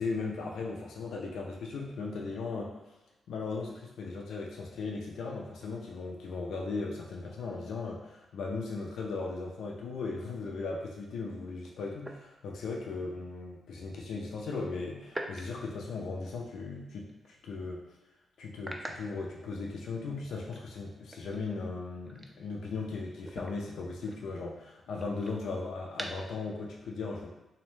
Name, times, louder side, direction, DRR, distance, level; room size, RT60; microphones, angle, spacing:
voice 1, 0.0-2.9 3.3-17.8 18.4-27.3, left 3 dB, 80° left, -1 dB, 0.4 m, -37 dB
sound 1, 12.0-12.9 15.1-16.7 17.1-17.3 17.7-17.8 18.6-20.0 20.4-22.9 23.2-26.4, right 1 dB, 15° right, 0.3 m, -46 dB
2.6 x 2.0 x 3.1 m, 1.0 s
cardioid pair, 60°, 0 cm